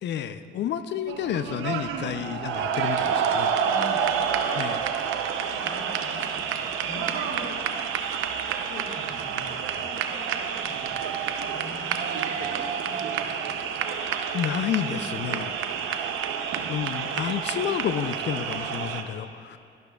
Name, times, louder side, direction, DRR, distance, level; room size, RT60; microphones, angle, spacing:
voice 1, 0.0-3.5 4.6-4.8 14.3-15.5 16.7-19.6, left 9 dB, 60° left, 11 dB, 0.4 m, -30 dB
sound 1, 1.1-19.0, right 7 dB, 85° right, 0.6 m, -29 dB
voice 2, 3.6-4.0 5.5-7.8 8.6-10.9 11.4-13.6 15.5-16.5, left 1 dB, 90° left, -5 dB, 1.6 m, -44 dB
12.0 x 11.5 x 2.3 m, 2.4 s
cardioid pair, 90°, 20 cm